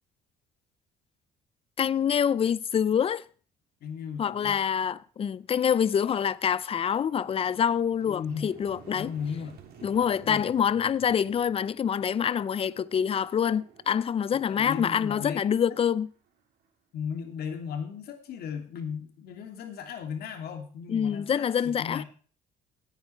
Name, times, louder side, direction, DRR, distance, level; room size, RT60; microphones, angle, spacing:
voice 1, 1.8-3.2 4.2-9.1 9.8-16.1 20.9-22.0, left 8 dB, 35° left, 0.5 m, -26 dB
voice 2, 3.8-4.5 8.0-8.5 8.9-9.6 10.2-10.6 14.3-15.8 16.9-22.1, left 7 dB, 70° left, 2.7 m, -36 dB
sound 1, 5.3-5.4 5.9-16.7, right 7 dB, 65° right, 3.1 m, -54 dB
17.0 x 9.2 x 4.5 m
cardioid pair, 110°, 17 cm